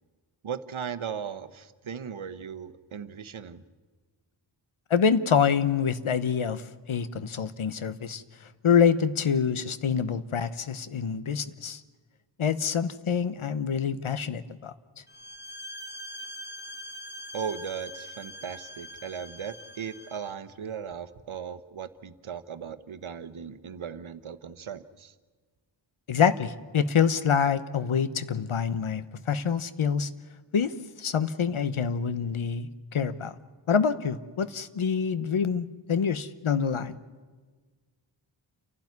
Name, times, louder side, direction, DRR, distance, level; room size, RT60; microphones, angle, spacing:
voice 1, 0.4-3.6 17.3-25.1, right 7 dB, 75° right, 12 dB, 1.1 m, -37 dB
voice 2, 4.9-8.2 8.6-11.8 12.4-14.7 26.1-30.1 30.5-33.3 33.7-37.0, left 7 dB, 80° left, 13 dB, 1.0 m, -26 dB
sound 1, 15.1-20.3, equal, 20° left, 1.7 m, -43 dB
29.0 x 12.0 x 9.5 m, 1.5 s
cardioid pair, 50°, 49 cm